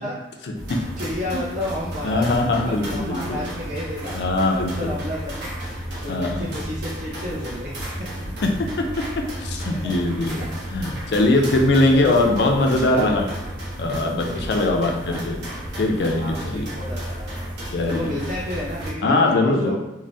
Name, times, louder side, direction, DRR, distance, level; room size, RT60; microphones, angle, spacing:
sound 1, 0.5-18.9, equal, 70° right, 0.8 m, -32 dB
voice 1, 1.0-2.3 2.7-4.2 4.5-7.7 9.8-9.9 11.3-12.2 12.9-13.3 14.3-15.2 16.2-17.5 17.8-19.7, left 1 dB, 40° right, -7 dB, 0.5 m, -32 dB
voice 2, 2.0-3.5 4.1-4.9 6.1-6.5 8.4-8.7 9.4-13.2 13.8-15.4 15.8-16.7 17.7-18.1 19.0-19.7, left 2 dB, 60° left, 2 dB, 0.4 m, -21 dB
2.6 x 2.0 x 3.2 m, 0.97 s
head